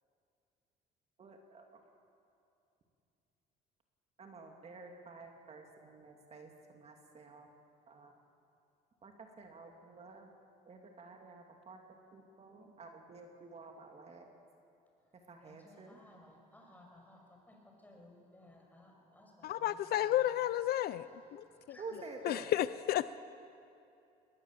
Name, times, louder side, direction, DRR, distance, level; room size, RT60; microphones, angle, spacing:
voice 1, 1.2-1.8 4.2-7.5 7.9-8.1 9.0-10.3 10.6-11.8 12.1-14.3 15.3-16.0 21.8-22.5, right 4 dB, 40° right, 3 dB, 2.6 m, -50 dB
voice 2, 15.4-20.3 20.7-20.9 21.4-22.1, left 1 dB, 10° left, 0 dB, 6.1 m, -60 dB
voice 3, 19.4-21.8 22.2-23.1, left 13 dB, 65° left, 15 dB, 0.6 m, -32 dB
21.0 x 19.5 x 7.6 m, 2.7 s
cardioid pair, 110°, 17 cm